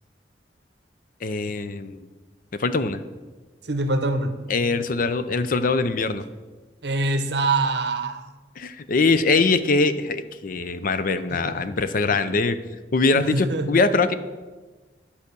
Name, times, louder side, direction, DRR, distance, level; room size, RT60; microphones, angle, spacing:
voice 1, 1.2-2.1 2.6-3.0 4.5-6.3 8.6-12.6 12.9-14.1, left 3 dB, 50° left, 12 dB, 0.5 m, -22 dB
voice 2, 3.6-4.4 6.8-8.3 11.3-11.7 13.1-13.7, right 2 dB, 65° right, 8 dB, 0.9 m, -25 dB
11.0 x 5.0 x 6.8 m, 1.3 s
head